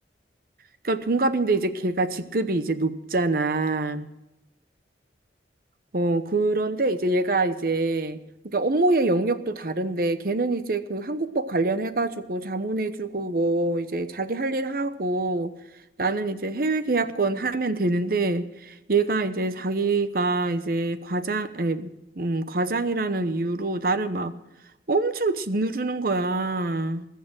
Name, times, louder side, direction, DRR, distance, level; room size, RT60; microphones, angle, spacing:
voice 1, 0.8-4.1 5.9-8.2 8.4-15.5 16.0-24.3 24.9-27.1, right 2 dB, 55° right, 11 dB, 0.9 m, -25 dB
20.5 x 6.9 x 7.7 m, 0.92 s
head